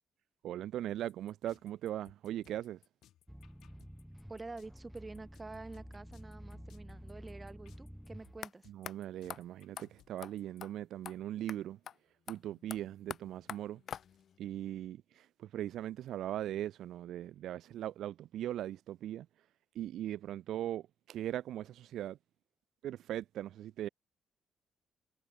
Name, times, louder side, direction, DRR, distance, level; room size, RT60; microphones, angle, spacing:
voice 1, 0.4-2.8 8.7-11.8 12.3-13.8 14.4-19.3 19.7-22.2 22.8-23.9, right 12 dB, 75° right, 0.5 m, -39 dB
sound 1, 1.1-10.6, left 12 dB, 75° left, 6.5 m, -65 dB
sound 2, 3.3-8.4, equal, ahead, 2.1 m, -50 dB
voice 2, 4.3-8.7, right 3 dB, 20° right, 5.5 m, -48 dB
sound 3, 8.4-8.5 8.9-9.0 9.3-9.4 9.8-9.9 10.2-10.3 10.6-10.7 11.1-11.2 11.5-11.6 11.9-12.0 12.3-14.4, left 8 dB, 60° left, 0.7 m, -45 dB
cardioid pair, 90°, 0 cm